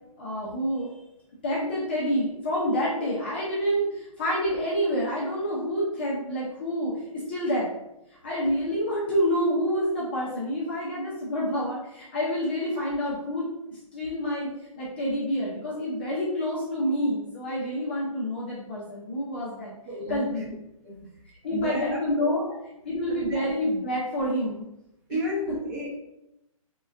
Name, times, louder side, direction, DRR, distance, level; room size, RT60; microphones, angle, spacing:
voice 1, 0.2-0.9 1.4-7.7 8.2-14.5 14.8-19.7 20.1-20.4 21.4-22.4 22.8-24.6, equal, 20° left, -6 dB, 0.3 m, -28 dB
voice 2, 19.9-20.2 20.8-21.0 21.5-22.3 23.1-23.4 25.1-26.0, equal, 30° right, -2 dB, 0.7 m, -32 dB
3.6 x 2.1 x 2.4 m, 0.87 s
hypercardioid pair, 160°, 18 cm